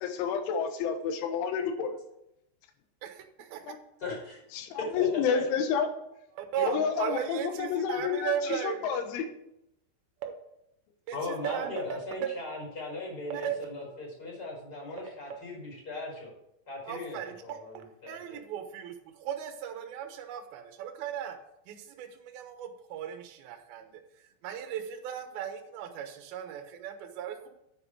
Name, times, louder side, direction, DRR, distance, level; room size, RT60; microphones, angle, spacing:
voice 1, 0.0-1.9 3.7-3.8 4.6-5.9 6.6-9.2, left 6 dB, 85° left, 7 dB, 3.6 m, -29 dB
voice 2, 3.0-3.6 6.4-8.9 10.2-10.3 11.1-12.3 13.3-14.0 14.3-14.4 16.9-17.6 18.1-21.4 21.7-23.9 24.4-27.5, right 9 dB, 65° right, 5 dB, 2.7 m, -36 dB
voice 3, 4.8-5.4 11.1-16.4 16.7-18.4, left 2 dB, 20° left, -2 dB, 5.2 m, -38 dB
9.8 x 9.1 x 4.7 m, 0.80 s
omnidirectional pair, 5.3 m